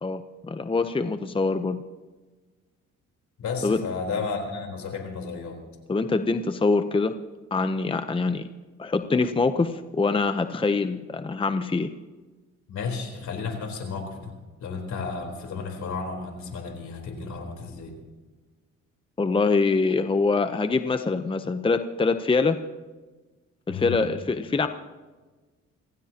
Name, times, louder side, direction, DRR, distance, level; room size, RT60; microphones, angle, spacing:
voice 1, 0.0-1.8 3.6-3.8 5.9-7.1 7.5-8.5 8.8-11.9 19.2-22.6 23.7-24.7, left 4 dB, 15° left, 9 dB, 0.8 m, -24 dB
voice 2, 3.4-5.6 12.7-14.3 14.6-17.9 23.7-24.0, left 4 dB, 70° left, 3 dB, 4.0 m, -33 dB
28.5 x 15.5 x 2.9 m, 1.3 s
cardioid pair, 90°, 30 cm